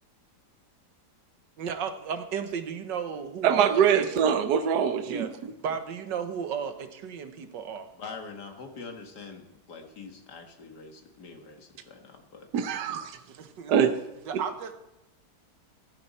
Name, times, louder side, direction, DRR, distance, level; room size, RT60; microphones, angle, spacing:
voice 1, 1.6-4.1 5.1-5.3 5.6-7.9 13.4-13.7 14.3-14.7, right 7 dB, 85° right, 8 dB, 1.9 m, -34 dB
voice 2, 3.4-5.3 12.5-13.2 13.7-14.0 14.3-14.4, right 8 dB, 70° right, 9 dB, 1.5 m, -23 dB
voice 3, 7.9-12.8, left 4 dB, 70° left, 4 dB, 2.4 m, -44 dB
15.5 x 12.5 x 4.3 m, 0.95 s
omnidirectional pair, 1.9 m